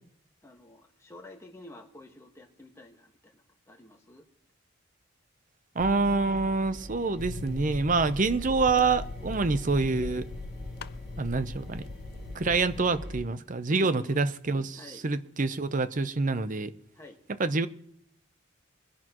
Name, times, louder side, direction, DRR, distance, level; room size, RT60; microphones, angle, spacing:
voice 1, 0.4-4.2 13.7-14.2 14.7-15.1 16.9-17.2, left 1 dB, 15° left, 0 dB, 1.5 m, -49 dB
voice 2, 5.7-10.3 11.2-11.8 12.3-16.7 17.4-17.7, right 3 dB, 40° right, 13 dB, 0.7 m, -26 dB
sound 1, 5.8-13.2, equal, 5° right, 3.9 m, -43 dB
sound 2, 7.2-12.8, left 3 dB, 55° left, 0.5 m, -40 dB
23.5 x 11.0 x 3.0 m, 0.72 s
head